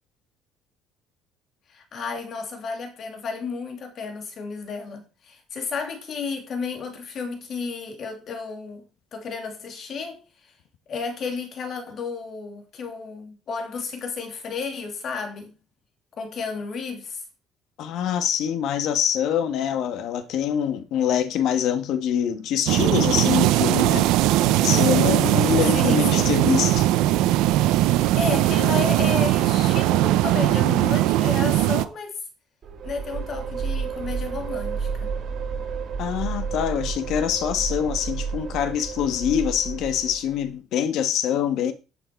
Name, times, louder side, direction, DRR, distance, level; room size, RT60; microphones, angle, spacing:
voice 1, 1.7-8.8 9.1-10.2 10.9-15.5 16.2-17.2 25.7-26.4 28.2-32.2 32.8-35.1, left 5 dB, 40° left, 2.8 m, -32 dB
voice 2, 17.8-24.1 24.6-26.9 36.0-41.7, left 9 dB, 65° left, 1.6 m, -24 dB
sound 1, 22.7-31.8, right 15 dB, 90° right, 0.7 m, -20 dB
sound 2, 32.6-40.5, right 5 dB, 40° right, 2.5 m, -31 dB
9.9 x 8.7 x 4.7 m
cardioid pair, 155°, 0 cm